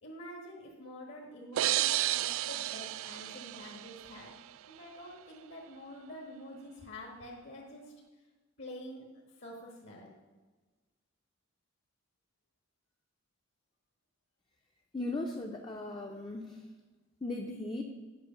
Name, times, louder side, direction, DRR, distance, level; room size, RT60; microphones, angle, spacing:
voice 1, 0.0-4.3 4.7-7.9 8.6-9.0 9.4-10.1, left 1 dB, 60° left, -2 dB, 1.5 m, -47 dB
sound 1, 1.6-4.3, right 14 dB, 80° right, 0.3 m, -32 dB
voice 2, 14.9-16.6 17.2-17.8, left 2 dB, 20° left, 1 dB, 0.6 m, -37 dB
9.6 x 6.3 x 5.8 m, 1.3 s
head